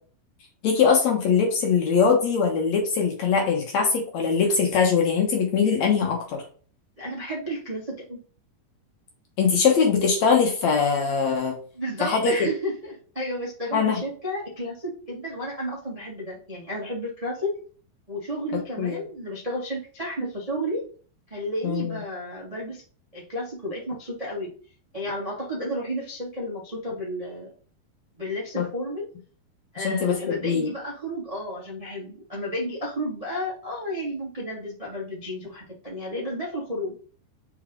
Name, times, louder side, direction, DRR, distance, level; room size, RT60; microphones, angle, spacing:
voice 1, 0.6-6.4 9.4-11.6 12.0-12.5 13.7-14.0 18.5-19.0 21.6-22.0 28.6-28.7 29.8-30.7, left 6 dB, 65° left, 1 dB, 1.9 m, -22 dB
voice 2, 7.0-8.2 11.7-17.5 18.1-20.8 21.3-22.8 23.1-24.5 24.9-27.5 28.2-29.1 29.7-37.0, equal, 65° right, -5 dB, 0.3 m, -32 dB
5.5 x 4.8 x 3.7 m, 0.41 s
omnidirectional pair, 4.3 m